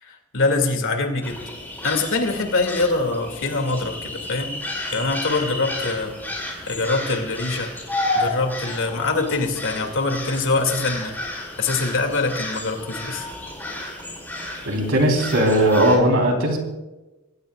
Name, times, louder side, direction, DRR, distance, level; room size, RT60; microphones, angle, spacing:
voice 1, 0.0-1.4 1.8-4.6 4.9-6.2 6.7-7.7 8.1-11.2 11.6-13.3, left 3 dB, 60° left, 4 dB, 2.6 m, -24 dB
sound 1, 1.2-16.0, left 2 dB, 10° left, 4.9 m, -32 dB
voice 2, 14.7-16.6, right 1 dB, 70° right, 2 dB, 4.0 m, -18 dB
24.0 x 17.0 x 2.5 m, 1.1 s
head